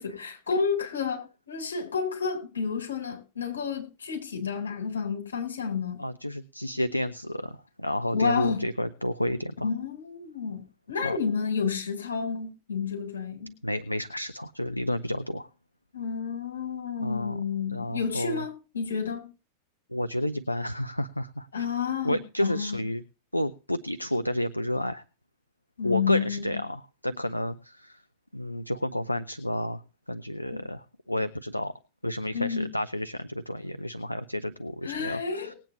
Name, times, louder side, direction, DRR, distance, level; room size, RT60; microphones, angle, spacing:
voice 1, 0.0-6.0 8.1-8.6 9.6-13.5 15.9-19.3 21.5-22.8 25.8-26.6 30.5-30.6 32.3-32.7 34.8-35.6, left 6 dB, 70° left, 4.2 m, -30 dB
voice 2, 6.0-9.7 11.0-11.1 13.6-15.5 17.0-17.4 17.7-18.4 19.9-21.7 22.0-23.0 23.3-25.0 25.8-28.0 28.3-29.8 30.1-31.7 32.0-35.5, left 1 dB, 85° left, 0.5 m, -31 dB
19.5 x 8.9 x 3.1 m
figure-of-eight pair, 90°, 0 cm